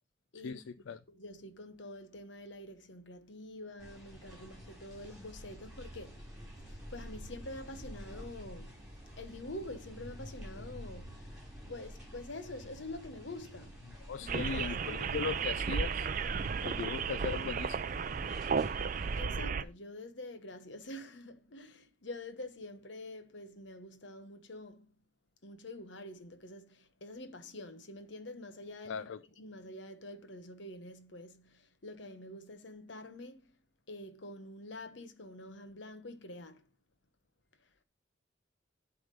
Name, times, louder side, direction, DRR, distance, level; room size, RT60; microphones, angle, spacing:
voice 1, 0.4-1.0 14.1-16.1 16.6-17.8 28.9-29.2, left 6 dB, 90° left, 0.4 m, -38 dB
voice 2, 1.1-13.9 14.2-14.8 19.2-24.9 25.4-33.6 33.9-36.7 37.6-37.7, left 1 dB, 70° left, 1.2 m, -47 dB
sound 1, 3.8-19.2, equal, 5° right, 3.4 m, -49 dB
sound 2, 14.3-19.6, right 6 dB, 45° right, 0.4 m, -34 dB
11.0 x 3.7 x 5.3 m
head